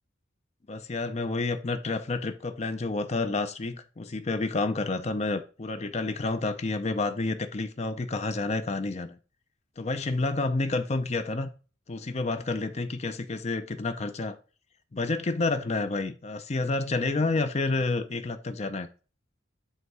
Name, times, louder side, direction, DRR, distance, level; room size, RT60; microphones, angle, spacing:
voice 1, 0.7-9.2 9.8-11.5 11.9-14.4 14.9-18.9, left 3 dB, 35° left, 0.5 m, -29 dB
8.0 x 2.9 x 4.6 m
head